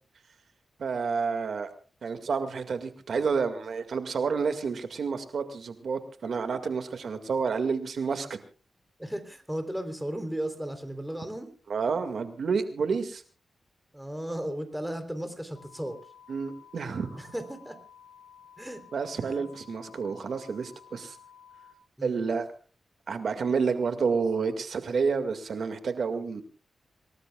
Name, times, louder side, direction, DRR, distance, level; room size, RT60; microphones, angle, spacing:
voice 1, 0.8-1.7 2.0-8.4 11.7-13.2 16.3-17.1 18.9-21.2 22.0-22.4 23.1-26.4, right 5 dB, 70° right, 8 dB, 2.0 m, -29 dB
voice 2, 9.0-11.5 13.9-16.0 17.2-17.8 18.6-18.8 19.3-19.4 22.0-22.2, right 1 dB, 5° right, 8 dB, 3.5 m, -35 dB
sound 1, 15.5-21.7, left 8 dB, 85° left, 6.6 m, -53 dB
27.0 x 19.0 x 2.4 m, 0.37 s
cardioid pair, 80°, 0 cm